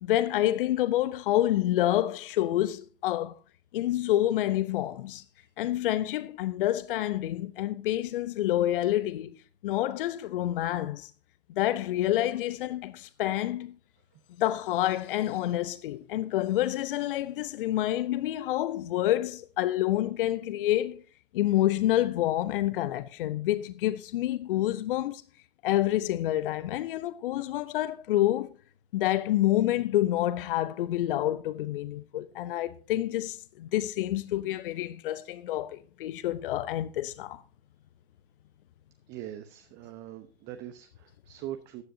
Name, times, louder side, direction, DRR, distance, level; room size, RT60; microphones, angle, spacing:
voice 1, 0.0-3.4 3.7-5.2 5.6-9.3 9.6-11.1 11.6-13.7 14.4-21.0 21.3-25.2 25.6-28.5 28.9-37.4, left 14 dB, 55° left, 0.6 m, -28 dB
voice 2, 39.1-41.8, right 12 dB, 35° right, 1.0 m, -42 dB
14.5 x 10.0 x 2.7 m
figure-of-eight pair, 95°, 32 cm